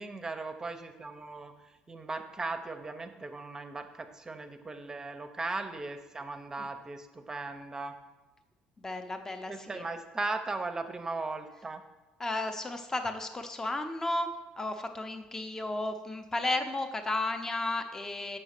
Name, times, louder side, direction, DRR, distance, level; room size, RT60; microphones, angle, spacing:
voice 1, 0.0-8.0 9.5-11.8, right 3 dB, 20° right, 8 dB, 0.8 m, -38 dB
voice 2, 8.8-9.8 12.2-18.4, left 2 dB, 15° left, 7 dB, 0.8 m, -33 dB
6.8 x 5.8 x 6.6 m, 1.1 s
cardioid pair, 120°, 3 cm